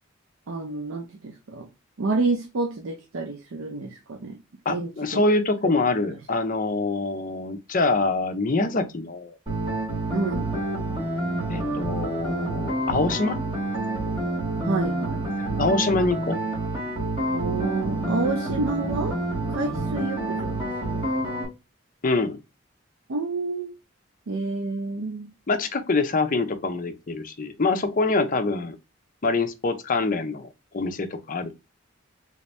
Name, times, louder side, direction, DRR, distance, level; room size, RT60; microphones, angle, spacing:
voice 1, 0.5-1.7 2.0-4.4 4.7-5.2 5.6-5.7 10.1-10.5 14.6-15.3 17.3-19.2 19.5-20.6 20.9-21.0 23.1-23.7 24.3-25.3, right 3 dB, 80° right, 0.5 m, -29 dB
voice 2, 4.7-9.4 11.5-13.4 15.4-16.4 22.0-22.4 25.5-28.8 29.2-30.5 30.7-31.5, left 3 dB, 40° left, 0.6 m, -25 dB
sound 1, 9.5-21.5, right 2 dB, 25° right, 1.5 m, -28 dB
3.4 x 2.7 x 3.2 m
head